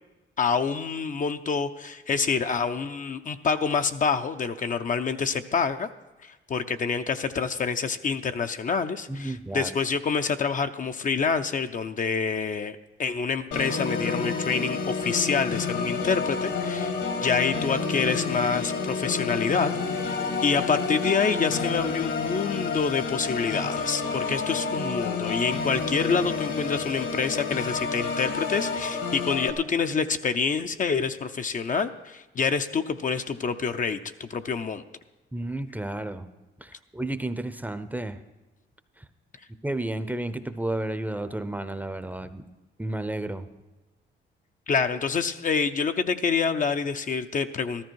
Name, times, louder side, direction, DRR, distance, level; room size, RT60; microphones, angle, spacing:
voice 1, 0.4-5.9 6.2-20.2 20.4-34.8 44.7-47.8, left 5 dB, 40° left, 8 dB, 0.6 m, -27 dB
voice 2, 9.1-9.7 35.3-36.3 36.6-38.2 39.0-39.1 39.6-42.4 42.8-43.5, right 1 dB, 10° right, 11 dB, 0.7 m, -32 dB
Organ, 13.5-29.5, left 4 dB, 70° left, 1.8 m, -29 dB
13.5 x 13.0 x 4.6 m, 1.1 s
cardioid pair, 90°, 20 cm